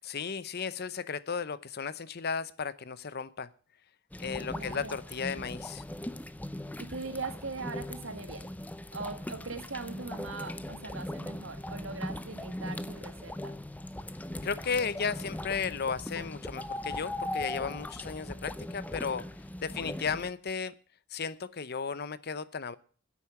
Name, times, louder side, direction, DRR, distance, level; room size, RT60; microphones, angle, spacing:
voice 1, 0.1-3.5 4.2-5.8 14.4-19.3 19.6-20.7 21.1-22.7, left 5 dB, 50° left, 16 dB, 0.7 m, -34 dB
sound 1, 4.1-20.3, left 1 dB, 10° left, 0.6 m, -39 dB
voice 2, 4.5-5.0 6.8-8.5 8.9-13.6 19.7-19.9, right 3 dB, 70° right, 8 dB, 2.0 m, -41 dB
10.5 x 8.4 x 9.9 m, 0.42 s
head